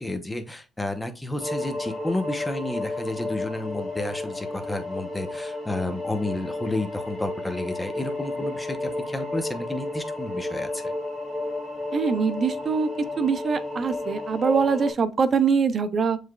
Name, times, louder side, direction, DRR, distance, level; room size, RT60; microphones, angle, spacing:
voice 1, 0.0-10.8, left 2 dB, 15° left, 0.8 m, -31 dB
sound 1, 1.4-14.9, left 2 dB, 30° left, 2.6 m, -32 dB
voice 2, 11.9-12.9 13.2-16.2, right 5 dB, 45° right, 0.6 m, -23 dB
7.1 x 3.2 x 2.3 m
cardioid pair, 90°, 0 cm